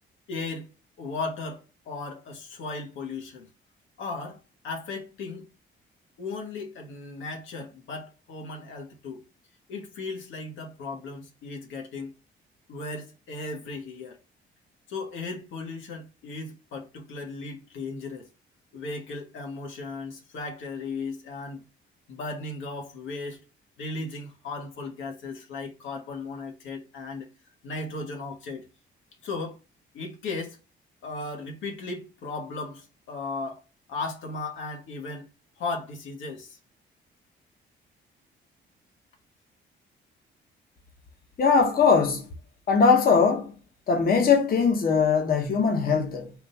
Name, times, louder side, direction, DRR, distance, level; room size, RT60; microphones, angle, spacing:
voice 1, 0.3-0.7 1.0-3.5 4.0-5.5 6.2-9.2 9.7-12.1 12.7-14.2 14.9-18.3 18.7-21.6 22.1-23.4 23.8-27.3 27.6-28.6 29.2-29.6 29.9-30.6 31.0-33.6 33.9-35.3 35.6-36.6, left 3 dB, 80° left, 1.4 m, -36 dB
voice 2, 41.4-42.3 42.7-43.5 43.9-46.3, left 5 dB, 50° left, 1.0 m, -21 dB
3.8 x 2.5 x 4.4 m
cardioid pair, 90°, 20 cm